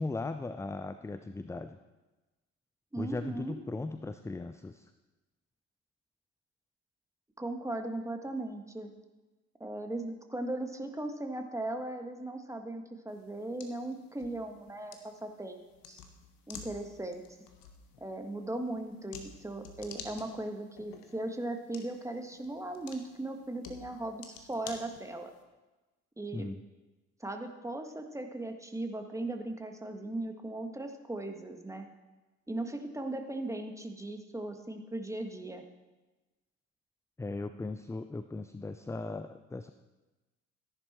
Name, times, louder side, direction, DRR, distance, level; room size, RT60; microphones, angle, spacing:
voice 1, 0.0-1.8 3.0-4.9 26.3-26.6 37.2-39.7, left 3 dB, 10° left, 10 dB, 0.4 m, -38 dB
voice 2, 2.9-3.5 7.4-8.9 9.6-16.0 16.5-17.2 18.0-25.3 26.2-26.5 27.2-31.9 32.5-35.6, right 2 dB, 10° right, 5 dB, 1.7 m, -38 dB
sound 1, 13.1-25.4, left 6 dB, 60° left, 1.5 m, -52 dB
14.0 x 10.5 x 4.4 m, 1.2 s
figure-of-eight pair, 50°, 38 cm